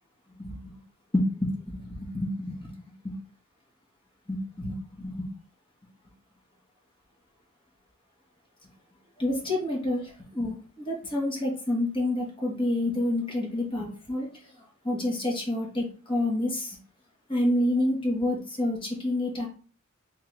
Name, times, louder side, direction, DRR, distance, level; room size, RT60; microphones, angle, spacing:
voice 1, 1.1-2.7 3.0-3.1 4.3-5.3 9.2-14.3 14.8-16.8 17.3-19.5, left 1 dB, 25° left, -2 dB, 1.2 m, -28 dB
3.7 x 3.2 x 3.2 m, 0.39 s
head